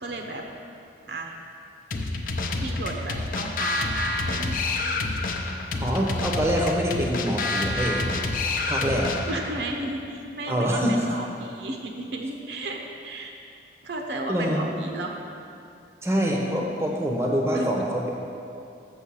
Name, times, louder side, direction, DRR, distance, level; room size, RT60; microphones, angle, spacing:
voice 1, 0.0-0.4 1.1-1.3 2.6-4.6 9.3-13.4 13.8-15.1 17.5-17.7, right 2 dB, 70° right, 2 dB, 0.9 m, -33 dB
sound 1, 1.9-9.5, left 2 dB, 45° left, 0.6 m, -28 dB
voice 2, 5.8-8.1 8.7-9.2 10.5-11.1 14.3-14.7 16.0-18.1, equal, 15° right, -1 dB, 0.7 m, -25 dB
7.1 x 6.3 x 6.3 m, 2.6 s
head